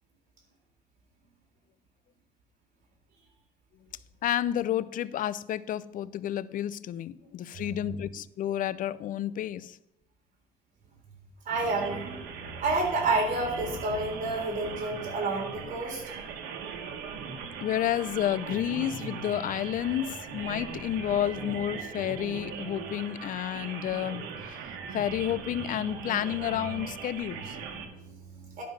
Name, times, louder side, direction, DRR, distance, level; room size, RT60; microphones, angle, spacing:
voice 1, 4.2-9.8 17.6-24.6 24.9-27.6, left 11 dB, 55° left, 0.4 m, -30 dB
voice 2, 11.5-12.1 12.6-16.0 27.7-28.6, right 2 dB, 50° right, 3.6 m, -30 dB
sound 1, 11.5-27.9, right 6 dB, 90° right, 1.4 m, -39 dB
11.0 x 5.3 x 5.5 m
cardioid pair, 110°, 17 cm